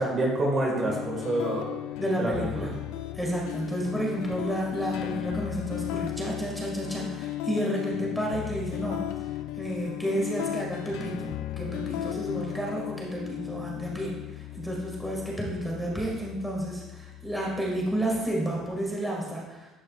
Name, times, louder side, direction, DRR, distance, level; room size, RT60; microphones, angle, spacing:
voice 1, 0.0-1.6 2.2-2.7, right 1 dB, 35° right, -1 dB, 1.8 m, -27 dB
sound 1, 0.9-18.8, left 14 dB, 80° left, 0.3 m, -36 dB
voice 2, 2.0-2.7 3.1-9.1 9.6-19.7, right 1 dB, ahead, -4 dB, 1.9 m, -31 dB
11.5 x 5.2 x 2.4 m, 1.1 s
cardioid pair, 105°, 0 cm